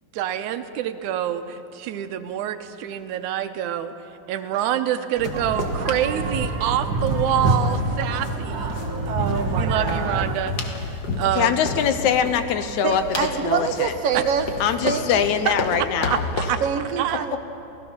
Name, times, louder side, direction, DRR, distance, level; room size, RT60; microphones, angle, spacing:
voice 1, 0.1-3.9 4.3-8.8 9.2-10.9 11.2-11.6 14.1-14.2 15.5-16.6 17.0-17.2, right 10 dB, 85° right, 9 dB, 2.3 m, -26 dB
sound 1, 5.2-16.5, left 3 dB, 45° left, 1.4 m, -33 dB
sound 2, 5.3-10.3, right 2 dB, 50° right, 2.2 m, -26 dB
voice 2, 9.1-10.3 12.8-14.5 14.8-15.3 16.6-17.4, right 7 dB, 70° right, 6 dB, 1.5 m, -25 dB
voice 3, 11.4-13.0 13.4-13.9 14.6-16.2, left 8 dB, 80° left, 9 dB, 2.3 m, -22 dB
28.5 x 17.5 x 5.8 m, 2.9 s
omnidirectional pair, 3.4 m